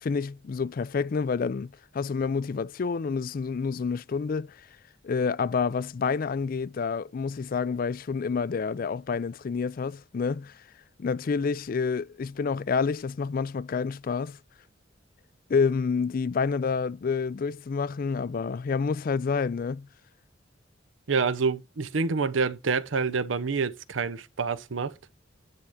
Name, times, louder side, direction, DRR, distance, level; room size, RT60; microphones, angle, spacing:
voice 1, 0.0-4.7 5.0-10.6 11.0-14.4 15.5-19.9, left 5 dB, 45° left, 0.4 m, -28 dB
voice 2, 21.1-24.9, right 4 dB, 85° right, 0.7 m, -27 dB
9.8 x 3.6 x 6.5 m
head